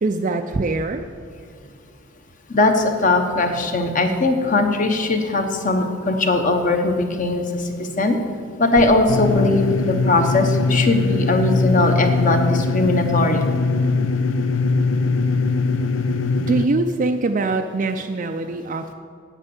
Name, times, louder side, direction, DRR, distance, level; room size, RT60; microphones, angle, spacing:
voice 1, 0.0-1.1 16.4-18.9, right 3 dB, 40° right, 5 dB, 0.4 m, -23 dB
voice 2, 2.5-8.2 8.6-13.4, left 2 dB, 40° left, 5 dB, 1.0 m, -20 dB
sound 1, 9.1-16.7, left 3 dB, 65° left, 0.6 m, -21 dB
9.7 x 8.3 x 7.1 m, 2.3 s
head